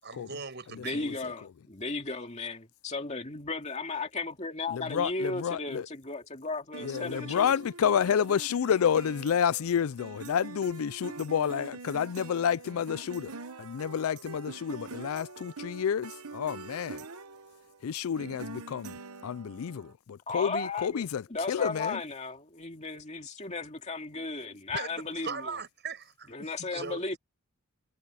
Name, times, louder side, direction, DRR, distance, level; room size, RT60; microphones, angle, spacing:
voice 1, 0.0-1.2 24.4-27.2, right 5 dB, 50° right, 7.1 m, -40 dB
voice 2, 0.8-7.5 20.3-25.4 26.3-27.2, left 3 dB, 30° left, 2.5 m, -35 dB
voice 3, 4.7-5.9 6.8-17.1 17.8-22.0, left 8 dB, 75° left, 0.4 m, -30 dB
sound 1, 6.7-19.9, right 4 dB, 85° right, 1.1 m, -44 dB
head